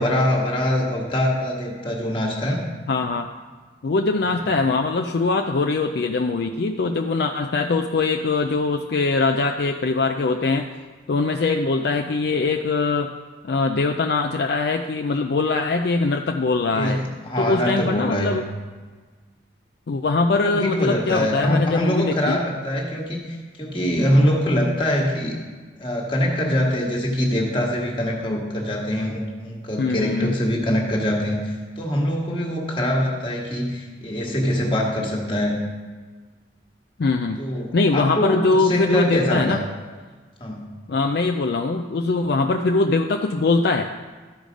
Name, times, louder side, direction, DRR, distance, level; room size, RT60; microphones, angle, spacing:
voice 1, 0.0-2.6 4.2-4.4 16.7-18.4 20.3-23.2 23.6-25.4 25.8-35.6 37.4-39.6 40.4-40.6, equal, 25° left, -1 dB, 1.5 m, -23 dB
voice 2, 2.9-3.3 3.8-10.7 11.1-13.1 13.5-17.0 17.4-18.4 19.9-22.4 29.8-30.4 37.0-37.4 37.7-39.6 40.9-43.9, left 3 dB, 55° left, 4 dB, 0.4 m, -22 dB
13.0 x 4.9 x 5.1 m, 1.4 s
head